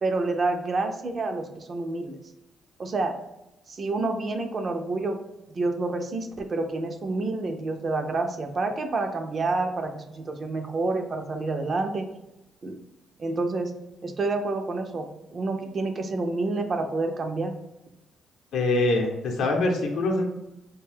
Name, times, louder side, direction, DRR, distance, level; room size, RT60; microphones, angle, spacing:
voice 1, 0.0-2.2 2.8-3.1 3.7-5.2 5.6-12.1 12.6-12.8 13.2-13.7 14.0-17.5, right 3 dB, 40° right, 5 dB, 0.4 m, -28 dB
voice 2, 18.5-20.3, left 2 dB, 80° left, 2 dB, 0.6 m, -24 dB
2.6 x 2.2 x 3.3 m, 0.93 s
cardioid pair, 90°, 0 cm